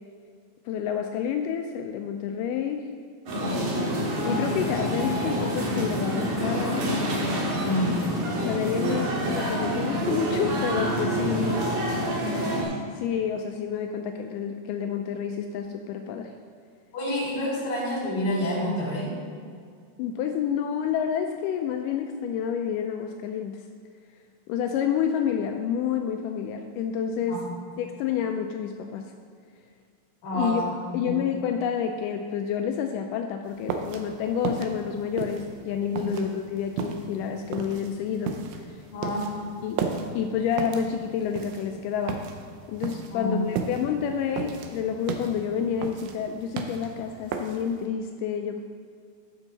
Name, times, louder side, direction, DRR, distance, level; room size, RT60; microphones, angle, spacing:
voice 1, 0.7-2.9 4.2-6.9 7.9-8.0 8.4-11.7 12.5-16.3 20.0-23.6 24.5-27.4 27.8-29.0 30.3-30.6 30.9-38.4 38.7-38.8 39.6-39.9 40.1-42.3 42.7-48.6, left 8 dB, 85° left, 4 dB, 1.8 m, -29 dB
sound 1, 3.3-12.6, equal, 60° right, 2.8 m, -27 dB
voice 2, 7.6-8.1 16.9-19.1 27.3-27.6 30.2-30.6 30.9-31.2 36.0-36.1 38.9-39.3 43.1-43.4, left 1 dB, 65° left, -5 dB, 4.6 m, -28 dB
sound 2, 33.5-47.8, right 6 dB, 85° right, 2.6 m, -34 dB
13.5 x 6.3 x 4.0 m, 2.2 s
omnidirectional pair, 4.3 m